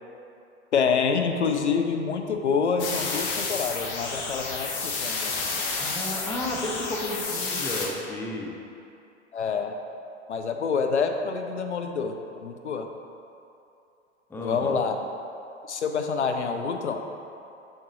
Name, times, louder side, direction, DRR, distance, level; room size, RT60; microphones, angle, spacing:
voice 1, 0.7-5.3 9.3-9.8 10.3-12.9 14.4-15.0 15.7-17.0, left 5 dB, 80° left, 5 dB, 0.5 m, -27 dB
sound 1, 2.8-7.9, left 4 dB, 35° left, 0.9 m, -30 dB
voice 2, 5.8-8.5 14.3-14.8, left 1 dB, 5° left, -1 dB, 0.5 m, -32 dB
6.2 x 5.7 x 3.1 m, 2.7 s
figure-of-eight pair, 85°, 34 cm